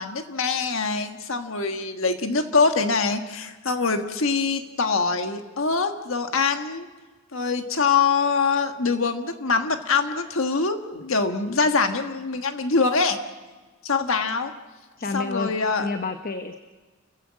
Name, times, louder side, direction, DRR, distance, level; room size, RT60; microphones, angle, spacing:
voice 1, 0.0-6.9 7.3-13.2 13.8-14.5 15.1-15.9, left 4 dB, 70° left, 6 dB, 1.5 m, -24 dB
voice 2, 15.0-16.6, left 3 dB, 40° left, 7 dB, 0.9 m, -30 dB
30.0 x 15.0 x 7.4 m, 1.3 s
head